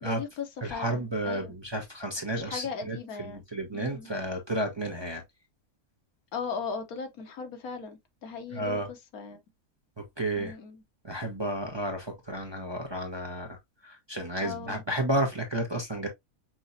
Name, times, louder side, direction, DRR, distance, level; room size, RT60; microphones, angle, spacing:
voice 1, 0.0-1.5 2.3-3.4 3.7-4.1 6.3-9.4 10.4-10.8 14.4-14.8, left 5 dB, 80° left, 1.4 m, -38 dB
voice 2, 0.6-3.0 3.2-5.2 8.5-8.9 10.0-10.6 11.0-16.1, right 1 dB, 20° right, 0.8 m, -32 dB
6.1 x 2.9 x 2.6 m
omnidirectional pair, 1.6 m